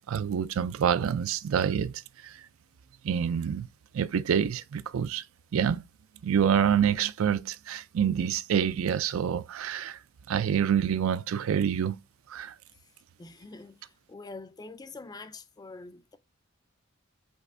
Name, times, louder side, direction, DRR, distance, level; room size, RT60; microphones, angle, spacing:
voice 1, 0.1-2.4 3.0-3.7 3.9-5.2 5.5-5.8 6.2-10.0 10.3-12.0 12.3-12.5, right 8 dB, 90° right, 0.4 m, -27 dB
voice 2, 13.2-16.2, left 3 dB, 20° left, 0.3 m, -45 dB
5.2 x 3.5 x 2.5 m
head